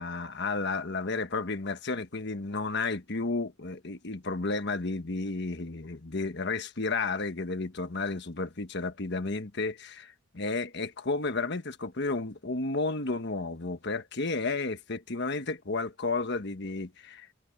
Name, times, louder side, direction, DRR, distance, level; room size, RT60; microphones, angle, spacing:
voice 1, 0.0-17.3, left 3 dB, 60° left, 1.3 m, -32 dB
head